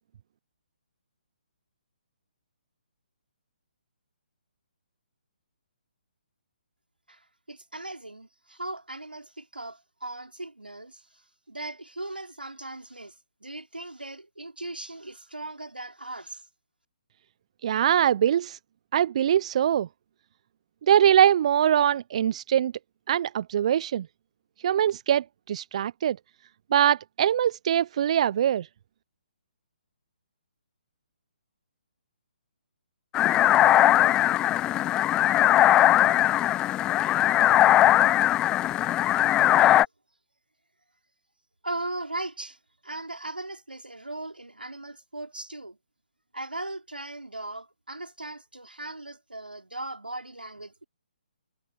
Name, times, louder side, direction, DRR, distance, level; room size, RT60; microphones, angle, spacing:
voice 1, 7.1-16.4 41.6-42.6 42.8-45.8 46.3-50.8, right 2 dB, 85° right, 4.0 m, -38 dB
voice 2, 17.6-18.6 18.9-19.9 20.9-22.7 23.1-24.1 24.6-26.2 26.7-28.7, right 10 dB, 45° right, 1.0 m, -22 dB
sound 1, 33.1-39.9, left 13 dB, 15° left, 0.7 m, -20 dB
figure-of-eight pair, 135°, 5 cm